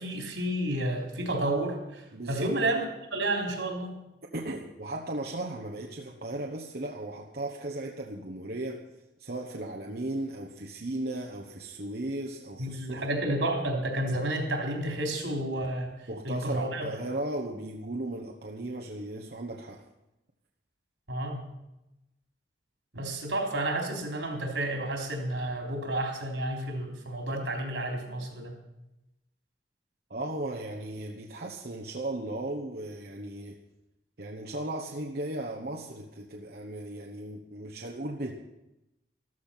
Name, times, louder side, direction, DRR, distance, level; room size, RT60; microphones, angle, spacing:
voice 1, 0.0-4.0 12.6-16.9 21.1-21.5 22.9-28.5, right 1 dB, 85° right, 2 dB, 3.7 m, -31 dB
voice 2, 2.1-2.5 4.3-8.9 9.2-13.2 16.1-19.8 30.1-33.6 34.2-38.3, right 1 dB, 55° right, 0 dB, 1.2 m, -36 dB
14.0 x 14.0 x 5.8 m, 0.91 s
head